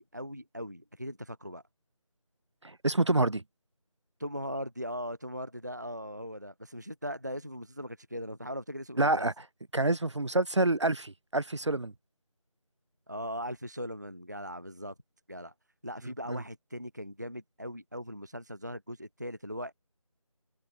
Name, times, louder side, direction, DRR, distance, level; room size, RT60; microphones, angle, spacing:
voice 1, 0.0-1.6 4.2-9.3 13.1-14.9 15.3-15.5 15.8-19.7, equal, 30° right, 0.5 m, -39 dB
voice 2, 2.6-3.4 9.0-9.3 9.7-11.9 16.3-16.4, right 2 dB, 55° right, 1.0 m, -27 dB
figure-of-eight pair, 170°, 18 cm